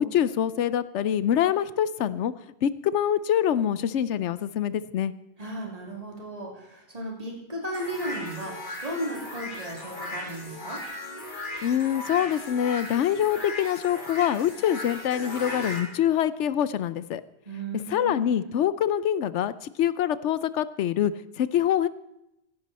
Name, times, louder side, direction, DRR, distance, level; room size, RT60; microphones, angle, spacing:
voice 1, 0.0-2.3 2.6-5.1 11.6-17.2 17.7-19.5 19.8-21.9, left 10 dB, 75° left, 16 dB, 0.9 m, -25 dB
voice 2, 5.4-8.5 8.8-10.8 17.4-18.5, right 1 dB, 30° right, -1 dB, 3.1 m, -35 dB
sound 1, 7.7-15.8, left 1 dB, 40° left, 2.5 m, -37 dB
16.0 x 11.5 x 4.2 m, 0.85 s
omnidirectional pair, 1.2 m